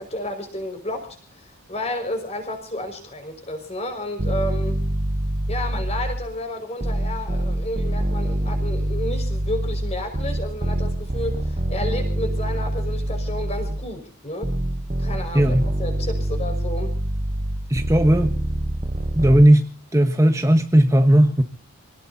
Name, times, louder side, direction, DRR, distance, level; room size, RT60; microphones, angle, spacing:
voice 1, 0.0-4.8 5.5-14.6 15.0-17.0, left 1 dB, 30° left, 6 dB, 5.4 m, -31 dB
sound 1, 4.2-6.4 6.8-13.9 14.4-19.4, right 1 dB, 30° right, 0.9 m, -25 dB
voice 2, 17.7-18.3 19.1-19.6 19.9-21.4, right 1 dB, 15° right, 6 dB, 1.1 m, -16 dB
27.5 x 18.5 x 2.8 m, 0.38 s
head